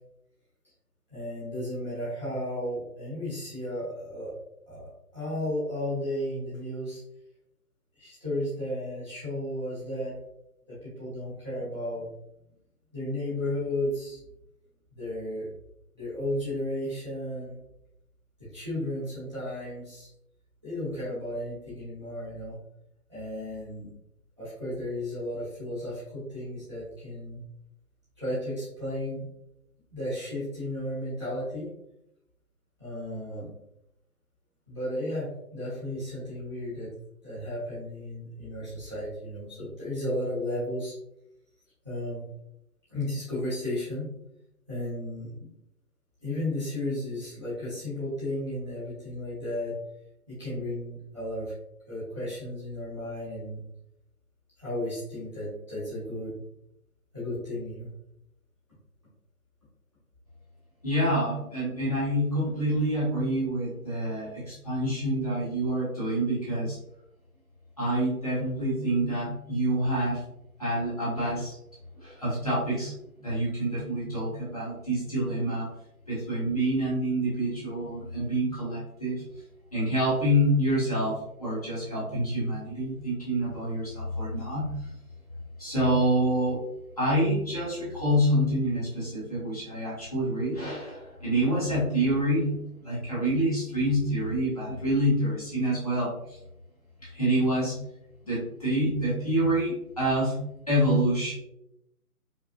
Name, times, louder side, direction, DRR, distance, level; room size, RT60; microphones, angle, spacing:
voice 1, 1.1-4.3 4.7-7.0 8.0-10.2 10.7-12.1 12.9-14.2 14.9-15.5 16.0-17.6 18.4-20.1 20.6-22.6 23.1-23.9 24.4-27.4 28.2-29.3 29.9-31.7 32.8-33.5 34.7-36.9 37.2-40.9 41.8-42.2 42.9-44.1 44.7-45.5 46.2-49.8 50.3-51.5 51.9-53.6 54.6-56.4 57.1-57.9, left 1 dB, 20° right, -12 dB, 1.0 m, -34 dB
voice 2, 60.8-66.8 67.8-70.2 70.6-71.6 72.0-72.9 73.2-75.7 76.1-79.2 79.7-84.9 85.6-86.6 87.0-96.4 97.0-97.8 98.2-101.3, right 1 dB, 25° left, -9 dB, 1.3 m, -27 dB
4.9 x 2.4 x 2.4 m, 0.83 s
figure-of-eight pair, 170°, 45 cm